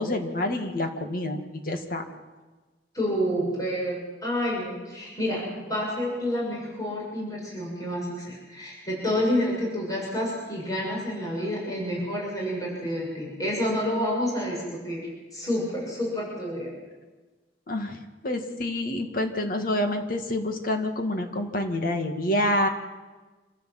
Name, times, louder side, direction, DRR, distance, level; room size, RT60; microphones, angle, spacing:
voice 1, 0.0-1.4 1.7-2.0 17.7-18.0 18.2-22.7, left 1 dB, 50° left, 5 dB, 2.2 m, -27 dB
voice 2, 2.9-15.0 15.3-16.7, equal, 20° left, -4 dB, 7.1 m, -29 dB
27.0 x 15.0 x 7.8 m, 1.3 s
head